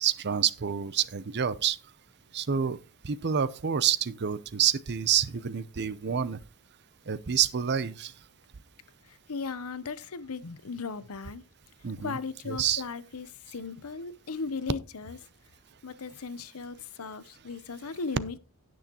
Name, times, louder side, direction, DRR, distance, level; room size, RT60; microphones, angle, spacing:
voice 1, 0.0-1.8 2.3-2.8 3.0-6.4 7.1-8.1 11.8-12.2 12.5-12.8, right 8 dB, 50° right, 0.6 m, -28 dB
voice 2, 9.1-11.4 12.0-15.2 15.8-18.4, left 4 dB, 70° left, 0.8 m, -37 dB
17.0 x 6.3 x 3.0 m
head